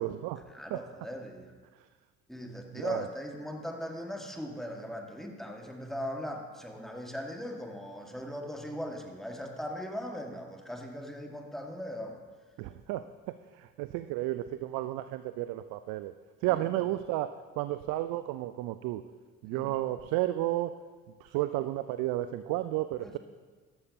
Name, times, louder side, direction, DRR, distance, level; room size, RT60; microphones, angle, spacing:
voice 1, 0.0-0.4 0.7-0.8 2.7-3.1 12.6-16.1 16.4-19.1 19.4-20.8 21.2-23.2, right 15 dB, 60° right, 11 dB, 0.5 m, -32 dB
voice 2, 0.5-1.5 2.3-12.2 19.5-19.7 23.0-23.2, equal, ahead, 2 dB, 1.7 m, -39 dB
13.5 x 12.0 x 2.8 m, 1.5 s
hypercardioid pair, 55°, 40 cm